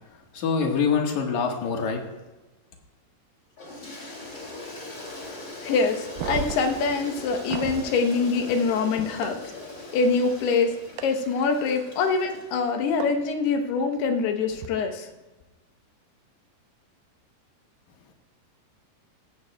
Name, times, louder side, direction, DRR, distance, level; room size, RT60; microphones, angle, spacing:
voice 1, 0.3-2.0, left 5 dB, 60° left, 1 dB, 2.5 m, -24 dB
Toilet flush, 3.6-12.9, left 2 dB, 25° left, 2.6 m, -40 dB
voice 2, 5.3-9.4 9.9-15.1, left 4 dB, 90° left, 5 dB, 3.1 m, -25 dB
sound 1, 6.1-7.8 9.2-9.3 11.0-11.1 13.0-13.1 14.5-14.7, right 8 dB, 80° right, 2.6 m, -34 dB
16.5 x 15.5 x 2.3 m, 1.1 s
omnidirectional pair, 4.5 m